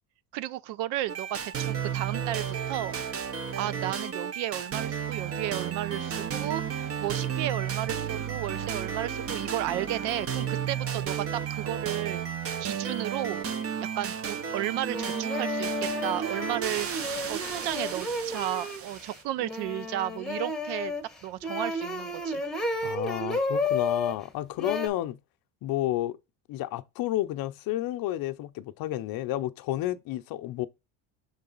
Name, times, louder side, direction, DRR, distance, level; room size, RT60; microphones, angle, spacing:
voice 1, 0.3-3.0 3.6-12.2 12.6-13.5 14.0-16.9 17.3-20.9 21.2-22.4, right 14 dB, 70° right, 0.6 m, -33 dB
sound 1, 1.1-19.2, right 8 dB, 35° right, 0.7 m, -33 dB
sound 2, 14.4-14.5 14.9-24.1 24.6-24.9, left 2 dB, ahead, 1.0 m, -32 dB
voice 2, 22.8-25.2 25.6-26.2 26.5-30.7, left 14 dB, 55° left, 0.6 m, -31 dB
6.7 x 3.8 x 3.8 m
cardioid pair, 135°, 43 cm